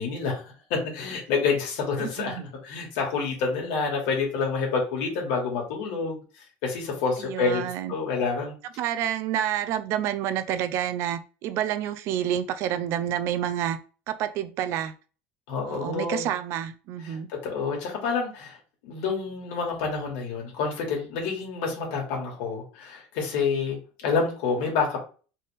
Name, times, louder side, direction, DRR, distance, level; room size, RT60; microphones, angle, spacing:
voice 1, 0.0-6.2 6.6-8.5 15.5-16.3 17.0-18.6 18.8-25.0, left 5 dB, 75° left, 2.2 m, -28 dB
voice 2, 2.0-2.4 7.2-7.9 8.8-13.8 14.1-14.9 15.7-17.3, right 10 dB, 55° right, 0.5 m, -29 dB
4.1 x 3.5 x 3.5 m
cardioid pair, 145°, 6 cm